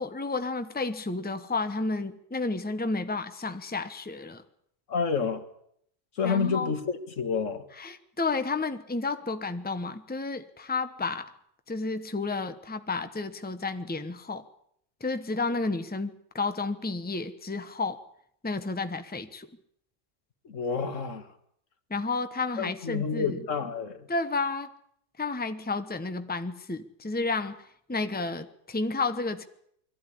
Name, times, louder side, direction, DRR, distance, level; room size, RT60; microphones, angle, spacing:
voice 1, 0.0-4.4 6.2-6.7 7.8-11.3 11.7-14.4 15.0-18.0 18.4-19.5 21.9-23.4 24.1-24.7 25.2-27.6 27.9-29.4, left 3 dB, 10° left, 9 dB, 1.0 m, -31 dB
voice 2, 4.9-5.4 6.2-7.6 20.5-21.3 22.6-24.1, left 5 dB, 80° left, 9 dB, 1.9 m, -29 dB
22.0 x 14.5 x 10.0 m, 0.70 s
omnidirectional pair, 1.3 m